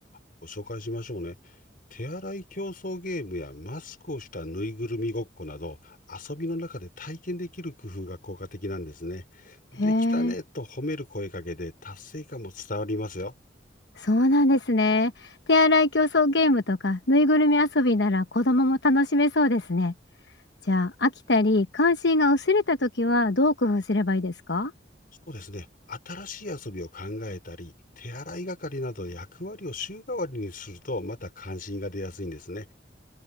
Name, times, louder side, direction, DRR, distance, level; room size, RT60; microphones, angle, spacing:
voice 1, 0.4-1.4 1.9-13.3 25.3-32.7, left 1 dB, 50° left, 5.6 m, -35 dB
voice 2, 9.7-10.3 14.0-19.9 20.6-24.7, left 2 dB, 70° left, 1.1 m, -22 dB
open air
head